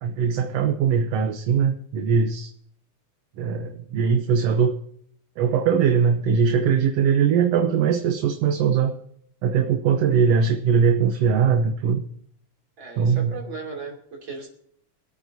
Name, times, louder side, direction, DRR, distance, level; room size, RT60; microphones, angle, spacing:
voice 1, 0.0-2.5 3.4-4.7 5.4-8.9 9.4-12.0 13.0-13.4, right 6 dB, 65° right, 5 dB, 1.7 m, -21 dB
voice 2, 12.8-14.5, right 4 dB, 40° right, 1 dB, 3.5 m, -36 dB
26.0 x 8.9 x 2.7 m, 0.69 s
omnidirectional pair, 3.4 m